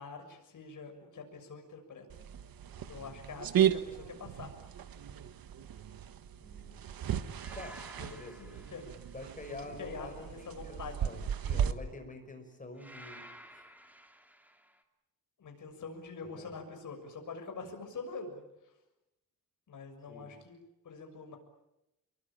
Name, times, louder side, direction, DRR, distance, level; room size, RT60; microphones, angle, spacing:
voice 1, 0.0-2.1 2.9-4.5 8.0-8.8 9.4-11.1 15.4-18.7 19.7-20.6 20.8-21.4, left 4 dB, 55° left, 4 dB, 6.6 m, -45 dB
sound 1, 2.1-11.7, right 9 dB, 75° right, 1.5 m, -35 dB
voice 2, 2.8-3.1 6.3-6.8 7.5-8.7 9.1-13.6 16.2-16.5 20.1-20.3, left 2 dB, 20° left, 5 dB, 5.8 m, -48 dB
sound 2, 3.2-3.5 7.4-9.5 12.8-14.8, equal, 5° right, 2.5 m, -54 dB
27.0 x 23.0 x 8.9 m, 0.90 s
wide cardioid pair, 160°, 36 cm